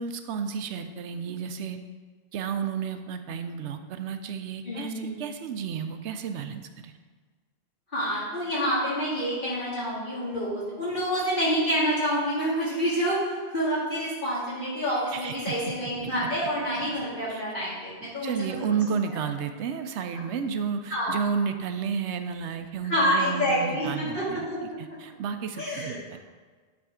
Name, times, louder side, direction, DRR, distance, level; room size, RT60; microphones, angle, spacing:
voice 1, 0.0-1.8 2.3-7.0 15.1-15.5 17.3-17.4 18.0-26.2, right 6 dB, 85° right, 8 dB, 0.9 m, -32 dB
voice 2, 4.6-5.1 7.9-18.7 20.9-21.2 22.9-24.6 25.6-26.2, equal, 50° left, -10 dB, 1.8 m, -28 dB
9.4 x 3.4 x 4.9 m, 1.4 s
omnidirectional pair, 1.2 m